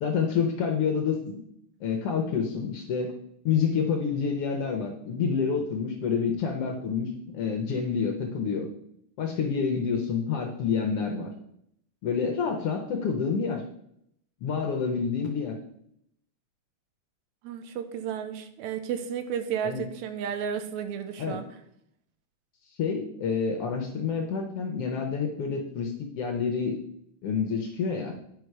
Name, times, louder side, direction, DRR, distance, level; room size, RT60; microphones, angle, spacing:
voice 1, 0.0-1.4 1.8-3.1 3.4-8.7 9.2-11.3 12.0-13.6 14.4-15.5 19.6-19.9 21.2-21.4 22.8-26.8 27.2-28.2, left 6 dB, 70° left, 2 dB, 1.5 m, -28 dB
voice 2, 17.4-21.4, right 8 dB, 80° right, 8 dB, 2.0 m, -32 dB
9.5 x 5.3 x 4.6 m, 0.74 s
omnidirectional pair, 3.4 m